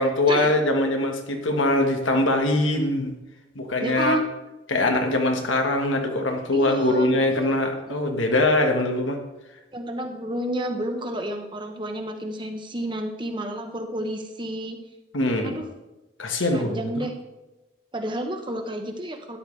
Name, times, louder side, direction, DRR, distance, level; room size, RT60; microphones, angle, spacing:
voice 1, 0.0-3.1 3.5-4.2 4.7-9.2 15.1-15.5 16.2-16.9, left 2 dB, 85° left, 4 dB, 1.6 m, -22 dB
voice 2, 3.8-4.2 6.5-7.6 7.9-8.0 9.7-14.8 15.4-15.7 16.5-17.1 17.9-19.4, right 1 dB, 25° right, 4 dB, 1.1 m, -30 dB
13.0 x 11.0 x 3.3 m, 1.0 s
head